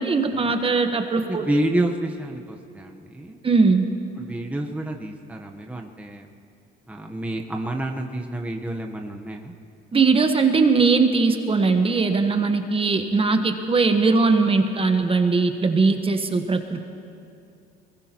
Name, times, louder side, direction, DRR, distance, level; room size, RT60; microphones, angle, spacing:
voice 1, 0.0-1.4 3.4-3.9 9.9-16.9, right 4 dB, 30° right, 6 dB, 1.2 m, -20 dB
voice 2, 1.1-3.4 4.2-6.3 6.9-9.5, right 1 dB, 5° right, 2 dB, 1.0 m, -29 dB
22.0 x 21.0 x 3.0 m, 2.5 s
supercardioid pair, 80°, 20 cm